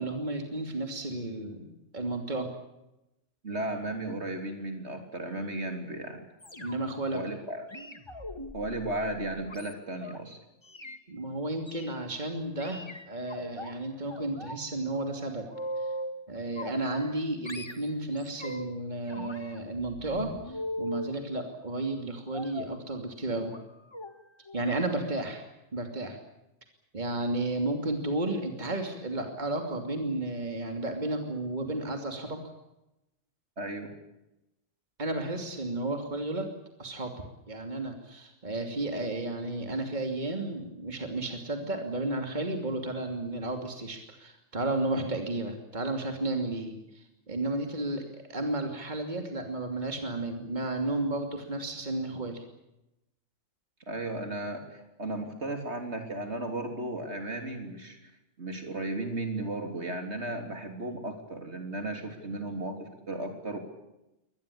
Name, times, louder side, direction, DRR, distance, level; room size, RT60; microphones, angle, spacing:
voice 1, 0.0-2.5 6.6-7.2 11.1-15.4 15.8-15.9 16.3-23.5 24.5-25.4 25.7-26.2 26.9-32.4 35.0-36.5 36.8-37.1 37.5-52.4, right 2 dB, 35° right, 4 dB, 3.0 m, -33 dB
voice 2, 3.4-6.2 7.1-7.6 8.5-10.4 33.6-33.9 53.9-58.0 58.4-63.6, right 2 dB, 60° right, 5 dB, 3.8 m, -35 dB
sound 1, 6.4-7.0 7.7-10.2 10.6-11.0 11.7-12.0 12.6-13.7 14.1-14.6 14.9-16.2 16.6-17.2 17.5-18.8 19.1-21.2 22.3-22.8 23.5-23.6 23.9-24.1 24.5-24.7 25.0-25.1, equal, 20° left, 1.9 m, -40 dB
24.0 x 19.5 x 8.6 m, 0.90 s
omnidirectional pair, 1.3 m